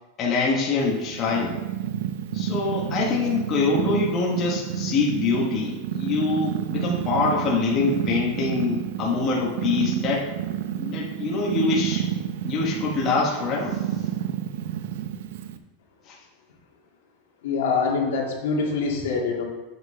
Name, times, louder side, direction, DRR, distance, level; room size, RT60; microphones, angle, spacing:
voice 1, 0.2-1.6 2.3-10.3 10.8-12.0 12.4-13.8 16.1-16.2, left 4 dB, 25° left, -3 dB, 1.1 m, -24 dB
Purr, 0.8-15.6, right 10 dB, 65° right, 0.5 m, -30 dB
voice 2, 17.4-19.4, left 4 dB, 75° left, -1 dB, 1.9 m, -24 dB
7.9 x 7.5 x 3.3 m, 1.1 s
supercardioid pair, 170°, 0 cm